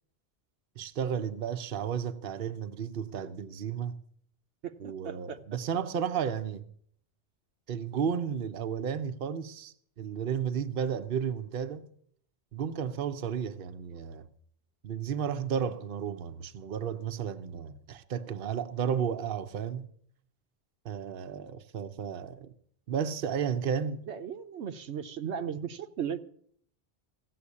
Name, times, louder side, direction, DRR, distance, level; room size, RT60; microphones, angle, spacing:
voice 1, 0.8-4.0 4.8-6.6 7.7-11.9 12.5-14.3 14.8-19.9 20.8-22.5 22.9-24.0, right 7 dB, 60° right, 0.9 m, -33 dB
voice 2, 5.0-5.4 24.1-26.2, right 8 dB, 80° right, 1.1 m, -36 dB
15.5 x 7.6 x 8.4 m
omnidirectional pair, 1.1 m